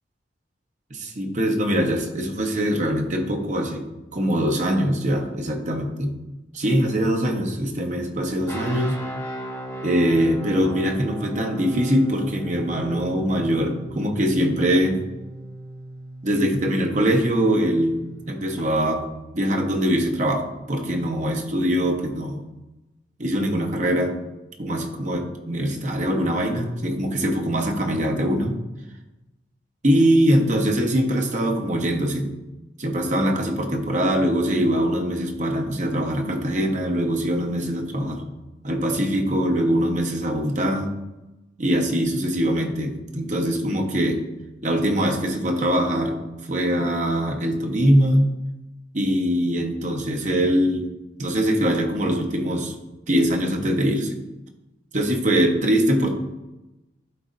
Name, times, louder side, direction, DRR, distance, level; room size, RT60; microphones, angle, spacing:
voice 1, 0.9-3.9 4.1-6.1 6.5-9.0 9.8-15.0 16.2-18.0 18.3-19.1 19.3-22.4 23.2-24.2 24.6-28.5 29.8-32.3 32.8-38.2 38.6-40.9 41.6-44.2 44.6-46.2 46.5-48.3 48.9-50.9 51.2-52.7 53.1-54.2 54.9-56.1, equal, 45° right, 3 dB, 1.0 m, -22 dB
sound 1, 8.5-18.6, right 1 dB, 15° left, 1.3 m, -37 dB
12.0 x 4.2 x 2.6 m, 0.99 s
head